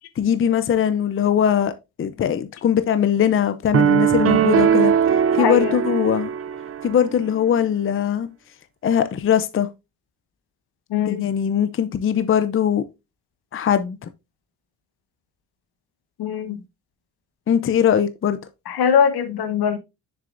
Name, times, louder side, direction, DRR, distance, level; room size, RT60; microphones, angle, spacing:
voice 1, 0.2-1.7 2.0-4.9 5.3-6.3 6.8-8.3 8.8-9.7 11.1-12.8 13.5-14.1 17.5-18.4, left 9 dB, 35° left, 0.6 m, -20 dB
sound 1, 3.7-7.0, right 8 dB, 40° right, 0.5 m, -19 dB
voice 2, 5.4-5.8 10.9-11.3 16.2-16.6 18.7-19.8, left 7 dB, 85° left, 1.4 m, -21 dB
6.8 x 6.7 x 2.5 m
cardioid pair, 125°, 37 cm